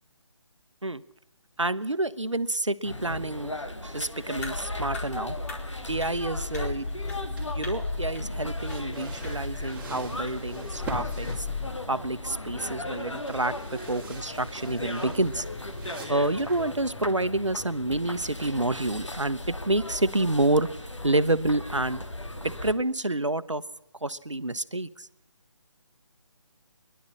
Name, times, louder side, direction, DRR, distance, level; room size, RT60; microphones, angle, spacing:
voice 1, 1.6-3.5 3.8-5.4 5.9-6.8 7.5-11.5 11.9-15.4 16.1-20.7 21.0-22.0 22.4-23.6 24.0-25.1, right 2 dB, 85° right, 13 dB, 1.0 m, -28 dB
sound 1, 2.8-22.7, left 1 dB, 80° left, 2.4 m, -37 dB
sound 2, 4.4-11.7, left 3 dB, 30° left, 4.4 m, -36 dB
sound 3, 6.6-17.0, right 1 dB, 10° right, 3.2 m, -44 dB
22.5 x 11.5 x 9.9 m, 0.98 s
figure-of-eight pair, 150°, 15 cm